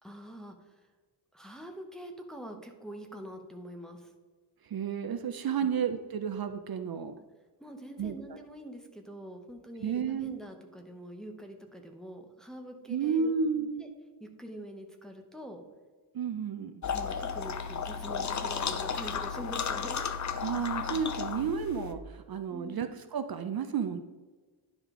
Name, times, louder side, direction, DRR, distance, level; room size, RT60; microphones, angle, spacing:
voice 1, 0.0-0.9 1.3-4.1 5.6-5.8 7.6-13.4 13.8-13.9 14.2-15.6 16.9-20.1 22.5-22.9, equal, ahead, 3 dB, 0.7 m, -45 dB
voice 2, 4.6-7.1 8.0-8.1 9.8-10.4 12.9-13.9 16.1-16.7 20.4-24.0, right 6 dB, 55° right, 9 dB, 0.5 m, -32 dB
sound 1, 16.8-21.9, left 6 dB, 45° left, 0.5 m, -34 dB
10.5 x 5.0 x 3.6 m, 1.4 s
wide cardioid pair, 170°, 44 cm